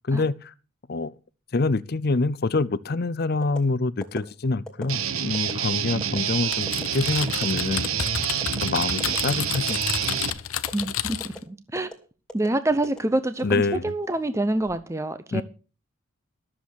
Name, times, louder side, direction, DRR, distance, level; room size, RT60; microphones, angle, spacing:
voice 1, 0.1-0.5 0.9-1.1 1.5-7.9 8.6-9.9 13.4-13.9 15.3-15.4, left 3 dB, 45° left, 0.5 m, -26 dB
sound 1, 3.4-3.6 4.0-4.2 4.7-4.9 5.3-5.5 6.0-6.2 6.7-6.8 7.3-7.5 7.8-8.1 8.4-8.6 9.0-9.2 9.5-9.8 10.1-10.3 10.7-10.8 11.2-11.4 11.7-11.9 12.3-12.5 12.8-13.0 13.4-14.0 14.5-14.8, equal, 5° left, 2.3 m, -39 dB
Guitar, 4.9-10.3, right 8 dB, 80° right, 1.0 m, -27 dB
Typing, 6.5-11.4, left 10 dB, 80° left, 0.8 m, -31 dB
voice 2, 10.7-11.9 12.3-15.4, right 1 dB, 15° right, 0.7 m, -26 dB
13.0 x 7.4 x 6.4 m
head